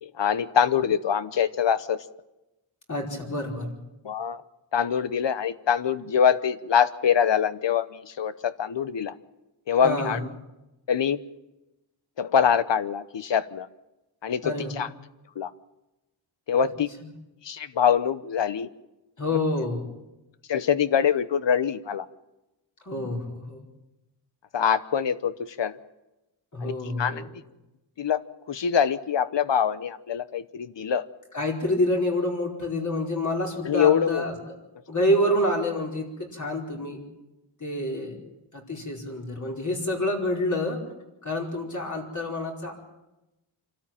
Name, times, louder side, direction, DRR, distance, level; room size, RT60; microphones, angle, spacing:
voice 1, 0.0-2.0 4.0-4.4 4.7-9.1 9.7-10.2 10.9-11.2 12.2-13.7 14.2-14.9 15.4-15.5 16.5-16.9 17.4-18.7 20.5-22.1 24.5-25.8 26.6-26.7 27.0-27.2 28.0-28.2 28.5-31.0 33.6-34.2, left 8 dB, 70° left, 14 dB, 1.0 m, -24 dB
voice 2, 2.9-3.7 9.8-10.2 14.4-14.8 16.6-16.7 17.0-17.1 19.2-19.8 22.8-23.6 26.5-27.3 31.3-34.3 34.9-37.0 37.6-38.2 38.5-40.8 41.2-42.7, left 1 dB, 40° left, -1 dB, 4.8 m, -27 dB
26.5 x 13.0 x 8.9 m, 0.98 s
wide cardioid pair, 130°, 46 cm